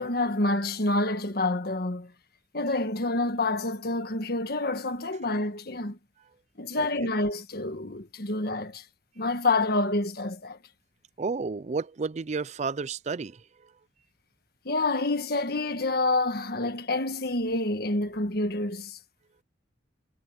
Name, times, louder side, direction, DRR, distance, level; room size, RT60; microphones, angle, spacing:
voice 1, 0.0-2.1 2.5-6.0 6.6-8.8 9.2-10.6 14.6-19.0, left 2 dB, 55° left, 1.5 m, -28 dB
voice 2, 6.8-7.1 11.2-13.4, right 4 dB, 35° right, 0.4 m, -32 dB
head